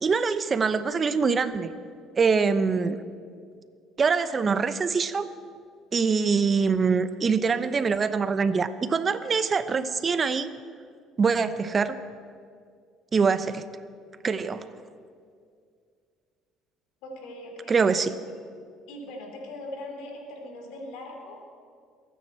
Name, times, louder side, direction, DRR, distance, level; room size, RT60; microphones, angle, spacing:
voice 1, 0.0-1.7 2.2-3.0 4.0-5.3 5.9-10.5 11.2-12.0 13.1-13.7 14.2-14.7 17.7-18.1, right 5 dB, 35° right, 13 dB, 0.8 m, -24 dB
voice 2, 17.0-17.8 18.9-21.4, left 1 dB, 75° left, 2 dB, 3.1 m, -40 dB
23.0 x 9.4 x 4.5 m, 2.2 s
supercardioid pair, 75°, 0 cm